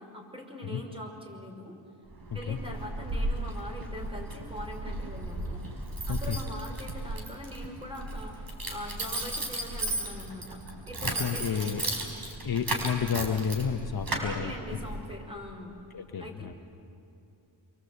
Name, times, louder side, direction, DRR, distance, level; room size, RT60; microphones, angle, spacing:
voice 1, 0.0-1.8 2.3-10.6 10.9-11.9 14.1-15.7 16.2-16.6, left 1 dB, 10° right, 1 dB, 5.8 m, -42 dB
Keys jangling, 2.1-15.2, right 2 dB, 50° right, 4.8 m, -35 dB
voice 2, 6.1-6.4 11.0-11.8 12.4-14.8 15.9-16.5, left 7 dB, 55° left, 5 dB, 1.2 m, -31 dB
30.0 x 24.0 x 8.1 m, 2.7 s
wide cardioid pair, 100°, 45 cm